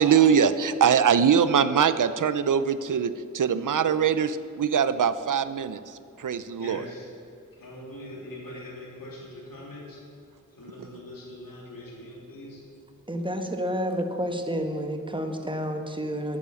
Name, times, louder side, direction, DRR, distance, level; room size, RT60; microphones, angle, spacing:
voice 1, 0.0-6.8, right 7 dB, 65° right, 13 dB, 0.7 m, -22 dB
voice 2, 6.5-7.1 7.5-10.0 10.5-12.6, left 1 dB, 75° left, -4 dB, 3.2 m, -42 dB
voice 3, 13.1-16.4, equal, 15° right, 5 dB, 1.4 m, -30 dB
10.0 x 9.1 x 7.1 m, 2.4 s
cardioid pair, 60°, 34 cm